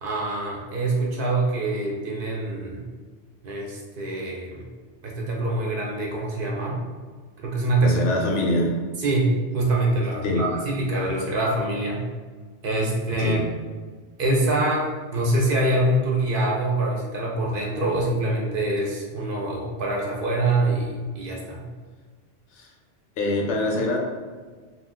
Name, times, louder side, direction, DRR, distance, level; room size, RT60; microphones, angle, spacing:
voice 1, 0.0-2.8 3.4-4.7 5.0-6.8 7.4-7.9 9.0-12.0 12.6-13.4 14.2-14.9 15.1-21.6, right 2 dB, 60° right, -2 dB, 0.6 m, -25 dB
voice 2, 7.8-8.8 10.2-10.5 13.2-13.4 22.5-22.7 23.2-24.0, left 1 dB, 85° left, 0 dB, 0.9 m, -24 dB
2.3 x 2.2 x 3.5 m, 1.5 s
omnidirectional pair, 1.2 m